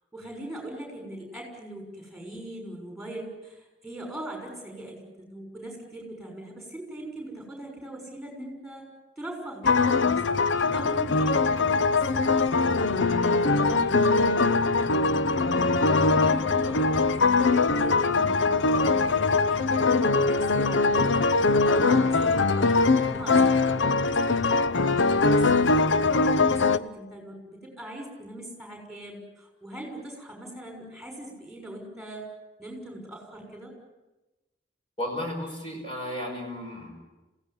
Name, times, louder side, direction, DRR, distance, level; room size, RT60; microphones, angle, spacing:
voice 1, 0.1-8.8 9.2-10.2 10.5-11.8 12.1-14.7 16.0-32.3 32.6-33.7, right 1 dB, ahead, 2 dB, 6.4 m, -41 dB
sound 1, 9.6-26.8, left 3 dB, 80° left, 0.8 m, -22 dB
voice 2, 35.0-37.0, left 1 dB, 30° left, 1 dB, 5.5 m, -34 dB
26.5 x 17.5 x 9.9 m, 1.1 s
head